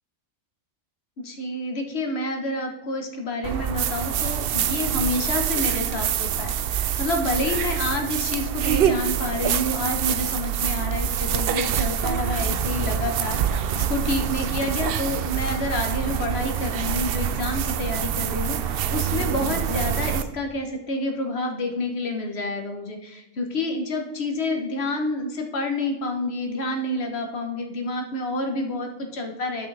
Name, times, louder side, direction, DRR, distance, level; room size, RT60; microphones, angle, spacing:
voice 1, 1.2-29.7, left 2 dB, 60° left, 4 dB, 1.4 m, -28 dB
sound 1, 3.4-20.2, right 9 dB, 60° right, 0.6 m, -25 dB
11.5 x 6.0 x 3.4 m, 0.98 s
omnidirectional pair, 1.3 m